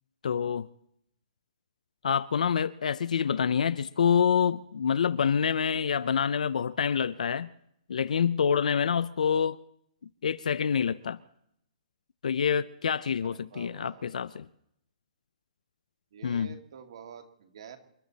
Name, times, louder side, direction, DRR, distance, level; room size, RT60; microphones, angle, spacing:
voice 1, 0.2-0.7 2.0-7.5 7.9-9.6 10.2-11.2 12.2-14.5 16.2-16.6, left 7 dB, 75° left, 0.6 m, -27 dB
voice 2, 13.2-14.1 16.1-17.8, right 7 dB, 45° right, 2.1 m, -48 dB
28.0 x 11.5 x 4.1 m
hypercardioid pair, 180°, 4 cm